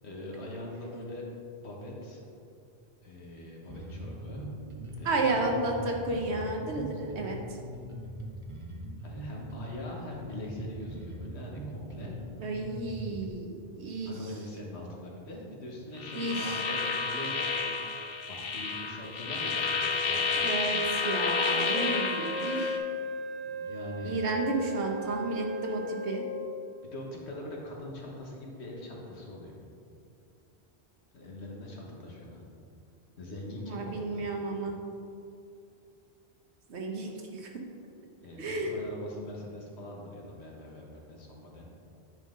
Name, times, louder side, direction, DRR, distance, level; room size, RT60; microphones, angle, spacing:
voice 1, 0.0-1.2 1.6-2.2 3.0-4.5 4.8-5.5 9.0-12.1 14.0-17.8 18.3-19.7 20.0-20.8 23.4-24.2 26.8-29.5 31.1-32.4 33.2-34.2 38.2-41.6, left 1 dB, 80° left, -2 dB, 1.6 m, -42 dB
Bass guitar, 3.7-13.3, equal, 35° right, 0.7 m, -41 dB
voice 2, 5.0-7.6 12.4-14.1 16.1-16.6 20.4-22.8 24.0-26.2 33.6-34.7 36.7-37.5 38.4-38.7, right 2 dB, 85° right, 1 dB, 1.3 m, -32 dB
sound 1, 16.0-22.8, left 4 dB, 60° left, 0.9 m, -30 dB
Wind instrument woodwind instrument, 21.7-26.5, left 1 dB, 40° left, 1.2 m, -37 dB
9.7 x 5.5 x 3.7 m, 2.5 s
omnidirectional pair, 1.1 m